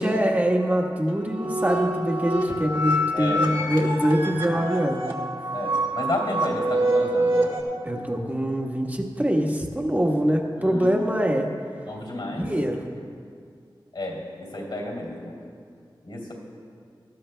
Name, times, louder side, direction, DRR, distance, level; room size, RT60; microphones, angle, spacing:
voice 1, 0.0-5.2 7.8-11.5 12.3-12.8, equal, 20° right, 1 dB, 1.4 m, -24 dB
sound 1, 1.1-7.6, right 1 dB, 65° right, 1.7 m, -26 dB
voice 2, 3.1-3.6 5.5-7.6 7.9-8.0 10.6-10.9 11.9-12.5 13.0-13.1 13.9-15.3 16.0-16.3, left 1 dB, 70° left, -1 dB, 2.9 m, -32 dB
18.5 x 13.0 x 2.3 m, 2.2 s
wide cardioid pair, 55°, 9 cm